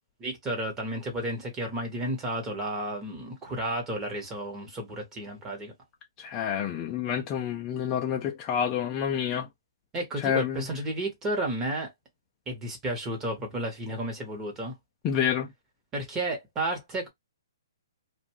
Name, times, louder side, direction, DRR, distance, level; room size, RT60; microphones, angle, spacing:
voice 1, 0.2-5.7 9.9-11.9 12.5-14.7 15.9-17.1, right 1 dB, 15° right, 0.9 m, -32 dB
voice 2, 6.2-9.5 10.2-10.6 15.0-15.5, left 8 dB, 20° left, 0.4 m, -28 dB
2.6 x 2.2 x 2.9 m
hypercardioid pair, 160°, 2 cm